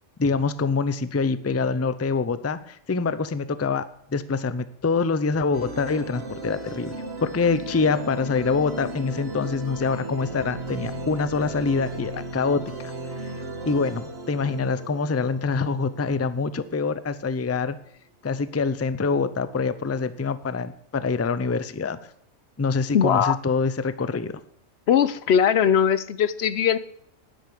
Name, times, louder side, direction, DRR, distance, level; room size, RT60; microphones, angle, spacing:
voice 1, 0.2-12.9 13.2-13.3 13.6-17.8 18.2-22.0 22.6-24.4, left 4 dB, 25° left, 0.3 m, -25 dB
sound 1, 5.5-16.9, right 2 dB, 50° right, 2.0 m, -36 dB
voice 2, 22.9-23.4 24.9-26.8, left 8 dB, 60° left, 0.9 m, -20 dB
10.5 x 8.3 x 9.8 m
omnidirectional pair, 1.4 m